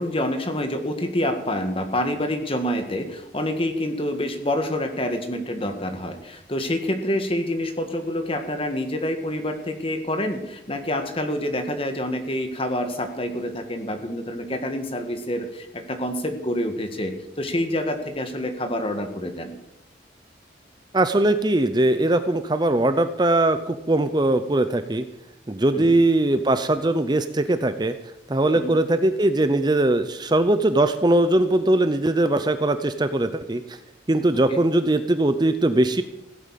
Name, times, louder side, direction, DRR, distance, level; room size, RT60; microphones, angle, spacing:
voice 1, 0.0-19.5 25.7-26.0 28.5-28.8 34.5-34.6, left 1 dB, 30° left, 6 dB, 1.7 m, -27 dB
voice 2, 20.9-25.0 25.5-27.9 28.3-33.6 34.1-36.0, right 1 dB, 25° right, 10 dB, 0.6 m, -20 dB
16.5 x 8.8 x 7.5 m, 0.90 s
head